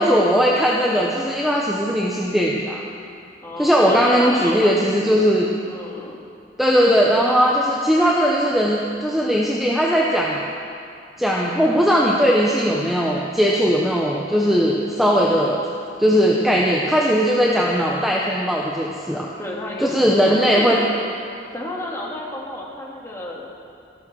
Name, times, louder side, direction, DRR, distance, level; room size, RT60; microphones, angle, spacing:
voice 1, 0.0-2.8 3.6-5.5 6.6-10.4 11.2-15.6 16.0-19.3 19.8-20.8, equal, ahead, -3 dB, 1.0 m, -18 dB
voice 2, 3.4-5.3 5.7-6.2 19.4-20.9 21.5-23.4, left 1 dB, 15° left, -3 dB, 2.3 m, -31 dB
13.5 x 13.0 x 6.3 m, 2.4 s
head